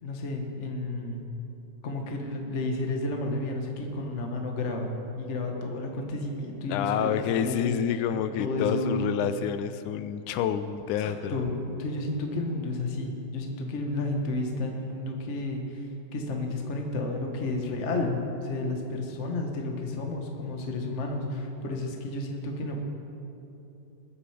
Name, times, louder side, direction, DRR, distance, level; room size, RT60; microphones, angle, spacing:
voice 1, 0.0-1.3 1.8-7.8 8.4-9.0 11.0-15.9 16.1-22.8, left 2 dB, 60° left, 2 dB, 0.7 m, -31 dB
voice 2, 6.7-11.4, left 9 dB, 80° left, 11 dB, 1.9 m, -28 dB
22.0 x 8.8 x 4.9 m, 3.0 s
omnidirectional pair, 3.7 m